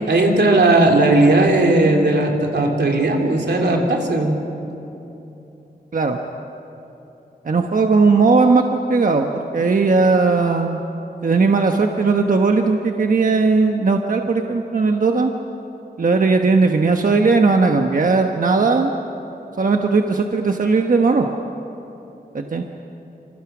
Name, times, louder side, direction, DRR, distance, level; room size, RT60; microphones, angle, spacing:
voice 1, 0.1-4.3, right 2 dB, 85° right, 1 dB, 3.3 m, -16 dB
voice 2, 7.4-10.8 11.2-15.3 16.0-18.9 19.6-21.3 22.3-22.6, right 4 dB, 55° right, 3 dB, 1.2 m, -17 dB
27.5 x 27.0 x 6.1 m, 3.0 s
wide cardioid pair, 115°, 17 cm